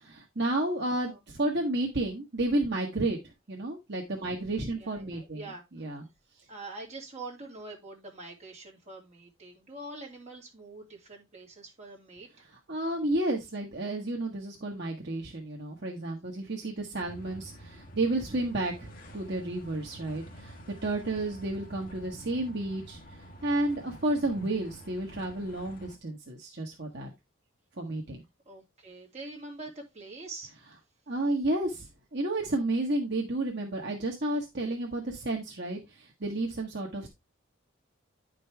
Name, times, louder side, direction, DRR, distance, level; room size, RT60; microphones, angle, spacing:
voice 1, 0.0-3.2 3.5-5.4 5.8-6.0 12.7-18.9 19.1-20.5 20.8-23.0 23.4-27.1 27.8-28.2 31.1-37.1, right 2 dB, 55° right, 1.3 m, -31 dB
voice 2, 4.8-5.9 6.3-12.5 28.5-30.5, right 2 dB, 35° right, 2.6 m, -45 dB
sound 1, 17.0-26.0, right 1 dB, 45° left, 1.4 m, -48 dB
10.0 x 5.3 x 3.4 m
head